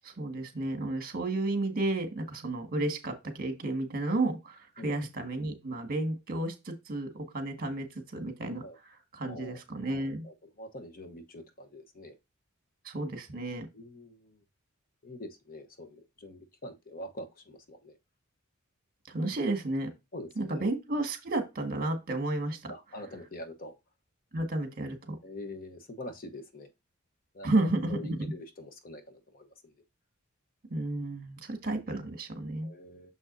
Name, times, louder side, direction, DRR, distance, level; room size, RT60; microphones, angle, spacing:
voice 1, 0.0-8.6 9.1-10.3 12.9-13.7 19.1-19.9 20.4-22.7 24.3-25.2 27.4-28.3 30.7-32.7, right 2 dB, 45° right, 1.7 m, -32 dB
voice 2, 9.2-9.6 10.2-12.1 13.7-14.4 15.0-18.0 20.1-20.7 22.7-23.8 25.2-26.7 27.3-29.7 32.6-33.1, left 1 dB, 45° left, 1.0 m, -45 dB
6.8 x 6.1 x 2.6 m
head